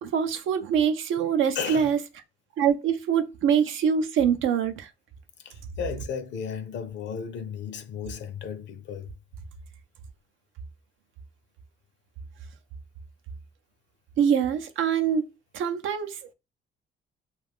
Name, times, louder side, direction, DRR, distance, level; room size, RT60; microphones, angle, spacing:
voice 1, 0.0-2.0 2.6-4.9 14.2-15.3 15.5-16.2, right 7 dB, 80° right, 0.5 m, -24 dB
voice 2, 1.5-1.9 5.4-9.1, left 7 dB, 65° left, 0.6 m, -34 dB
2.4 x 2.4 x 3.5 m
cardioid pair, 90°, 20 cm